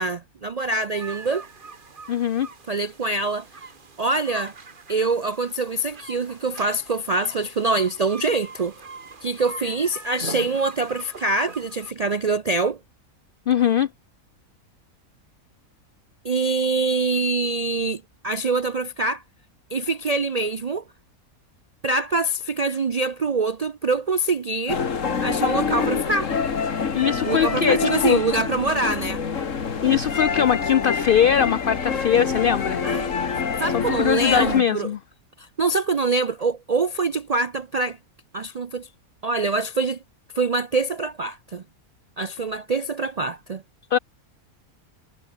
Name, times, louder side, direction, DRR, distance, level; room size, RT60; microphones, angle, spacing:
voice 1, 0.0-1.5 2.7-3.5 4.0-4.5 4.9-8.7 9.2-12.8 16.2-19.2 19.7-20.8 21.8-24.8 25.2-26.3 27.2-29.2 32.8-33.1 33.6-34.9 35.4-38.0 38.3-38.9 39.2-40.0 40.3-41.6 42.2-43.6, right 3 dB, 65° right, 0.3 m, -24 dB
sound 1, 0.9-11.9, right 4 dB, 35° right, 1.6 m, -41 dB
voice 2, 2.1-2.5 13.5-13.9 26.9-28.2 29.8-32.8 33.7-35.0 43.9-44.0, left 8 dB, 90° left, 0.4 m, -21 dB
Ambience - Street musicians in underground hall Madrid, 24.7-34.6, left 6 dB, 60° left, 2.0 m, -26 dB
omnidirectional pair, 1.5 m